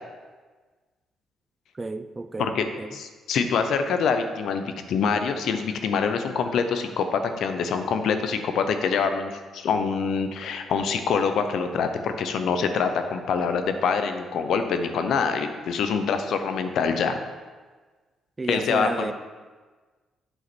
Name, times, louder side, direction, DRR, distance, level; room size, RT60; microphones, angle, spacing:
voice 1, 1.7-2.9 18.4-19.1, right 3 dB, 20° right, 11 dB, 0.4 m, -31 dB
voice 2, 2.9-17.2 18.5-19.1, left 5 dB, 70° left, 7 dB, 0.7 m, -25 dB
8.0 x 4.0 x 6.1 m, 1.4 s
cardioid pair, 90°, 0 cm